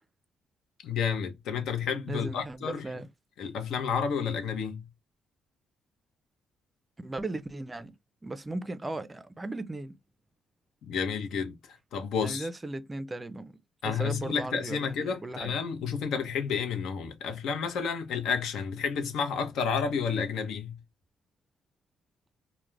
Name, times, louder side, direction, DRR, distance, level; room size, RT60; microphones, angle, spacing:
voice 1, 0.8-2.8 3.4-4.8 10.8-12.5 13.8-20.8, left 6 dB, 80° left, 0.7 m, -31 dB
voice 2, 2.1-3.1 7.0-7.9 8.2-9.9 12.2-13.6 13.8-15.5, right 2 dB, 20° right, 0.4 m, -36 dB
2.3 x 2.1 x 3.1 m
cardioid pair, 90°, 0 cm